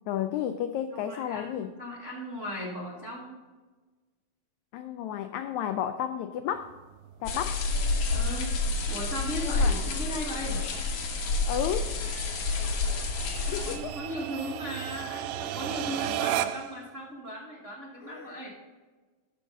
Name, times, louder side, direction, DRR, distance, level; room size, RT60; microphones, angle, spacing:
voice 1, 0.1-1.7 4.7-6.7 7.2-7.6 9.4-9.8 11.5-12.0 13.4-14.0 18.0-18.5, left 10 dB, 85° left, 8 dB, 1.6 m, -32 dB
voice 2, 0.9-3.4 8.1-8.5 8.9-10.6 13.5-18.5, equal, 60° right, -4 dB, 0.7 m, -37 dB
sound 1, 6.6-16.8, right 12 dB, 90° right, 2.3 m, -37 dB
sound 2, 7.3-13.8, left 3 dB, 65° left, 2.5 m, -29 dB
13.5 x 5.5 x 3.7 m, 1.3 s
omnidirectional pair, 3.8 m